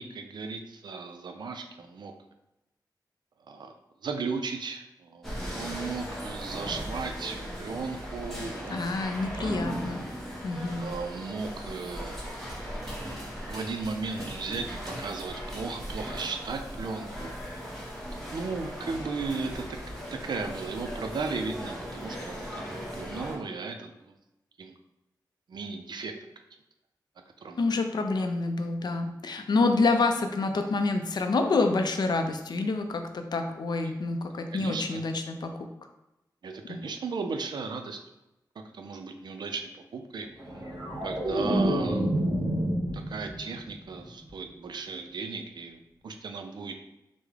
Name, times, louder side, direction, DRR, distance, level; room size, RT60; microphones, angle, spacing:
voice 1, 0.0-2.1 3.5-3.7 4.0-9.6 10.8-12.3 13.4-17.3 18.3-19.8 20.1-22.4 22.9-24.1 24.6-24.7 25.5-26.3 27.4-27.6 33.8-34.0 34.5-35.0 36.4-38.0 38.7-40.3 41.0-42.2 42.9-46.8, right 4 dB, 70° right, 6 dB, 0.4 m, -36 dB
sound 1, 5.2-23.4, equal, 5° left, 1.0 m, -38 dB
voice 2, 8.7-10.0 10.4-10.9 27.6-35.7 36.7-36.8, left 3 dB, 65° left, 5 dB, 0.4 m, -27 dB
sound 2, 40.4-43.6 43.9-44.3, right 1 dB, 35° right, 1.2 m, -28 dB
3.5 x 2.0 x 3.2 m, 0.92 s
wide cardioid pair, 85°, 8 cm